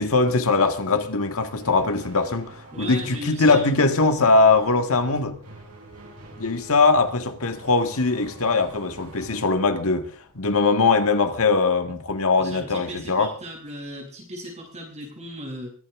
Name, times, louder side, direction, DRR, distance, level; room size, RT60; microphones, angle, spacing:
voice 1, 0.0-5.4 6.4-10.1 10.4-13.3, left 3 dB, 65° left, 1.7 m, -21 dB
sound 1, 1.5-11.0, right 1 dB, 80° right, 7.3 m, -45 dB
voice 2, 2.7-3.7 12.4-15.7, equal, 30° right, 7.9 m, -36 dB
23.5 x 11.5 x 3.7 m
head